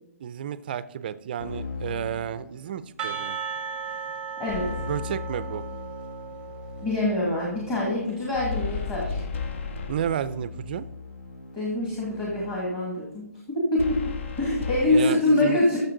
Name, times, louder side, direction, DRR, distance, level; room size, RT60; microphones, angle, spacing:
voice 1, 0.2-3.4 4.8-5.6 9.9-10.9 14.9-15.6, right 9 dB, 35° right, 14 dB, 0.5 m, -31 dB
Keyboard (musical), 1.4-3.1 4.5-12.9, left 4 dB, 65° left, 2.2 m, -40 dB
Percussion / Church bell, 3.0-7.5, right 7 dB, 10° right, 0.8 m, -36 dB
sound 1, 4.5-5.1 8.3-10.4 13.8-14.9, left 5 dB, 50° left, 0.8 m, -33 dB
voice 2, 6.8-9.2 11.5-14.0 14.4-15.8, left 2 dB, 15° left, -4 dB, 2.0 m, -25 dB
14.0 x 6.6 x 3.8 m, 0.81 s
hypercardioid pair, 170°, 9 cm